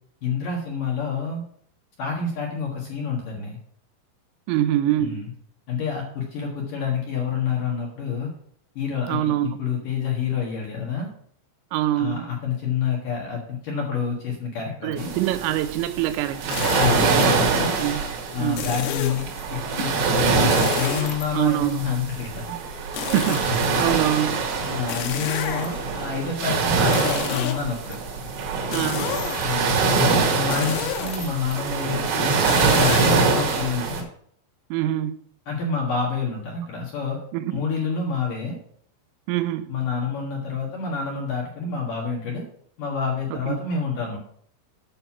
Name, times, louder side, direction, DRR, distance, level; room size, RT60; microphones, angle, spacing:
voice 1, 0.2-1.4 2.0-3.6 5.0-5.3 5.7-8.3 8.8-11.1 12.0-15.1 16.8-17.7 18.3-19.2 19.5-22.4 23.7-24.0 24.7-28.0 29.4-32.4 32.7-34.0 35.5-37.2 37.5-38.6 39.7-42.4 42.8-44.2, left 5 dB, 60° left, 2.5 m, -28 dB
voice 2, 4.5-5.2 9.1-9.5 11.7-12.3 14.8-16.6 17.8-18.7 21.3-21.8 23.0-24.4 28.7-29.1 34.7-35.2 37.3-37.6 39.3-39.7 43.3-43.6, right 13 dB, 90° right, 3.3 m, -25 dB
sound 1, 15.0-34.0, right 4 dB, 65° right, 4.1 m, -24 dB
sound 2, 16.5-17.3 18.6-19.4 20.5-21.7 22.9-24.1 24.9-26.0 26.8-28.0 28.7-29.7 30.5-31.5 32.4-33.1, left 10 dB, 90° left, 3.7 m, -31 dB
9.2 x 6.7 x 5.9 m
omnidirectional pair, 5.9 m